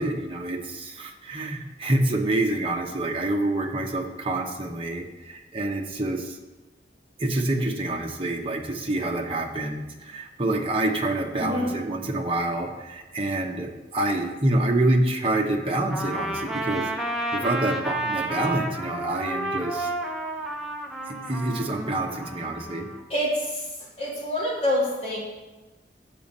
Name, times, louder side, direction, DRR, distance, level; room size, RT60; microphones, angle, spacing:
voice 1, 0.0-6.4 7.2-19.9 21.1-22.9, right 1 dB, 30° right, 1 dB, 0.9 m, -27 dB
voice 2, 11.4-11.8 23.1-23.7 24.0-25.2, left 1 dB, 35° left, -6 dB, 2.6 m, -26 dB
Trumpet, 15.9-23.0, right 1 dB, ahead, 0.7 m, -31 dB
7.0 x 5.2 x 7.2 m, 1.2 s
head